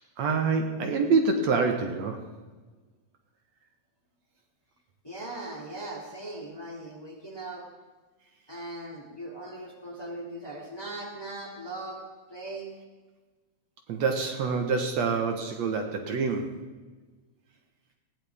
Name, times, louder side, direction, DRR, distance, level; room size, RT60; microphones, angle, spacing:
voice 1, 0.2-2.2 13.9-16.6, right 4 dB, 65° right, 4 dB, 2.4 m, -26 dB
voice 2, 5.0-7.7 8.5-12.7, right 2 dB, 10° left, -2 dB, 2.2 m, -39 dB
19.5 x 16.0 x 3.6 m, 1.3 s
omnidirectional pair, 3.3 m